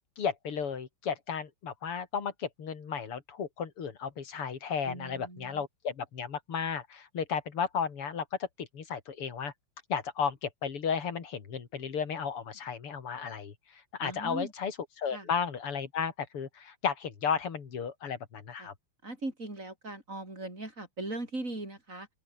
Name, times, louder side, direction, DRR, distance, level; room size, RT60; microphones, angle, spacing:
voice 1, 0.2-9.5 9.9-13.5 14.0-14.7 15.0-18.7, left 6 dB, 90° left, 3.4 m, -34 dB
voice 2, 4.8-5.6 14.0-14.5 15.1-15.3 18.6-18.7 19.0-22.1, right 2 dB, 35° right, 5.8 m, -39 dB
open air
omnidirectional pair, 2.4 m